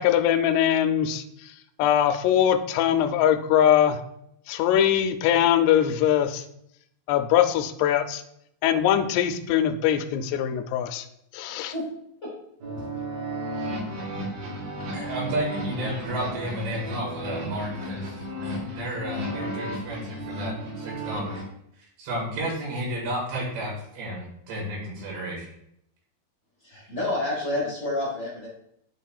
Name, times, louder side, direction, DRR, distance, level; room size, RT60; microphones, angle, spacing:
voice 1, 0.0-1.5 1.8-4.0 4.5-6.4 7.1-8.2 8.6-11.1 11.3-11.7, left 10 dB, 85° left, 7 dB, 2.6 m, -22 dB
sound 1, 12.6-21.4, right 1 dB, 65° right, 3.1 m, -33 dB
voice 2, 14.9-18.2 18.4-21.4 21.8-25.5, right 1 dB, 90° right, -3 dB, 4.0 m, -32 dB
voice 3, 26.6-28.5, left 2 dB, 65° left, -6 dB, 1.0 m, -29 dB
10.0 x 4.2 x 2.3 m, 0.76 s
omnidirectional pair, 4.8 m